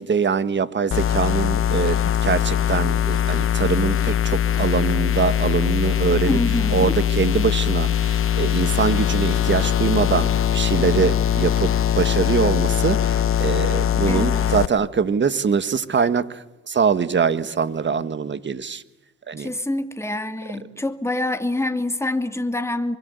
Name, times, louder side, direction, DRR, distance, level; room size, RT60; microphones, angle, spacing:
voice 1, 0.0-6.4 6.7-18.8 19.3-19.5, right 6 dB, 40° right, 1.6 m, -23 dB
sound 1, 0.9-14.7, left 10 dB, 45° left, 1.0 m, -21 dB
voice 2, 6.3-6.9 14.1-14.6 19.4-23.0, left 1 dB, 10° left, 2.5 m, -26 dB
25.5 x 24.0 x 8.3 m
cardioid pair, 90°, 30 cm